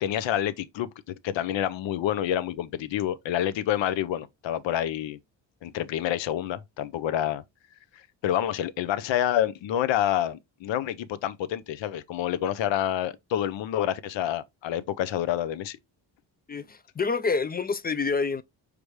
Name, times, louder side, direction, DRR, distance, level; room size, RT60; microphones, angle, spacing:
voice 1, 0.0-5.2 5.6-7.4 8.2-15.8, left 11 dB, 75° left, 0.6 m, -28 dB
voice 2, 16.5-18.4, left 4 dB, 25° left, 0.3 m, -27 dB
4.9 x 3.4 x 3.1 m
cardioid pair, 65°, 45 cm